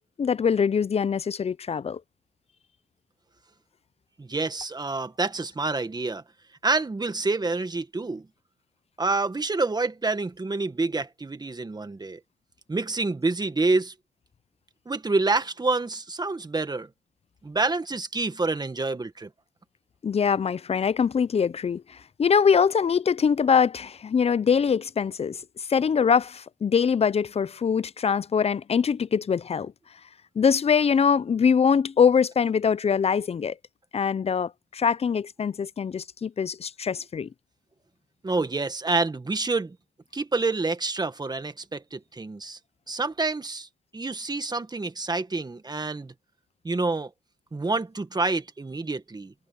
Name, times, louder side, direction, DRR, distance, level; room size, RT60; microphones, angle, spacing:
voice 1, 0.2-2.0 20.0-25.4 25.7-29.7 30.4-33.5 33.9-37.3, left 6 dB, 30° left, 0.6 m, -23 dB
voice 2, 4.2-6.2 6.6-8.3 9.0-12.2 12.7-13.9 14.8-16.9 17.4-19.3 38.2-39.8 40.1-42.6 42.9-43.7 43.9-46.1 46.6-47.1 47.5-49.3, right 3 dB, 20° right, 1.7 m, -27 dB
cardioid pair, 90°, 20 cm